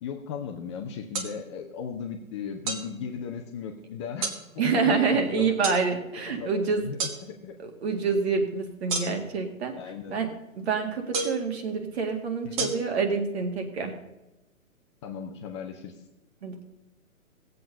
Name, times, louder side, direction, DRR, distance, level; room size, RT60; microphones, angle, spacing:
voice 1, 0.0-5.6 6.3-7.6 9.7-10.2 12.4-12.8 15.0-15.9, left 6 dB, 20° left, 3 dB, 0.7 m, -37 dB
sound 1, 1.1-1.3 2.7-2.9 4.2-4.4 5.6-5.8 7.0-7.2 8.9-9.4 11.1-11.5 12.6-12.7, right 4 dB, 25° right, 1.4 m, -29 dB
voice 2, 4.6-6.8 7.6-9.7 10.1-10.3 10.6-13.9 16.4-16.6, right 5 dB, 50° right, 4 dB, 2.2 m, -27 dB
17.5 x 7.9 x 5.3 m, 0.97 s
figure-of-eight pair, 130°, 42 cm